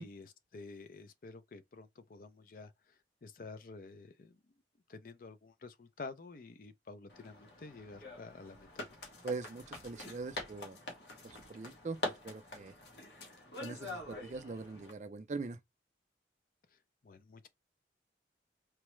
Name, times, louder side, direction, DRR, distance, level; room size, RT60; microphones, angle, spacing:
voice 1, 0.0-4.4 4.9-9.0 16.7-16.8 17.0-17.5, left 3 dB, 50° left, 0.4 m, -50 dB
sound 1, 7.1-14.9, left 1 dB, 70° left, 1.0 m, -45 dB
voice 2, 9.2-10.8 11.2-12.7 13.6-15.6, right 3 dB, 40° right, 0.4 m, -42 dB
4.5 x 2.0 x 3.0 m
head